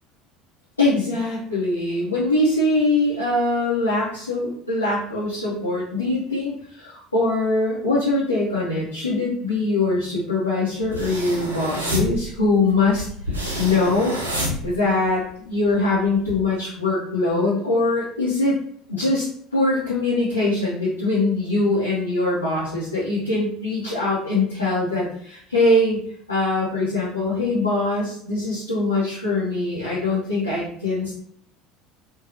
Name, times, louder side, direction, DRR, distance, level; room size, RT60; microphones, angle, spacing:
voice 1, 0.8-14.2 14.6-18.6 18.9-19.3 19.5-26.0 26.3-31.2, left 2 dB, 85° left, -10 dB, 0.7 m, -22 dB
sound 1, 10.8-15.3 15.7-16.3, equal, 80° right, 0.5 m, -28 dB
3.1 x 2.2 x 2.5 m, 0.62 s
figure-of-eight pair, 65°, 0 cm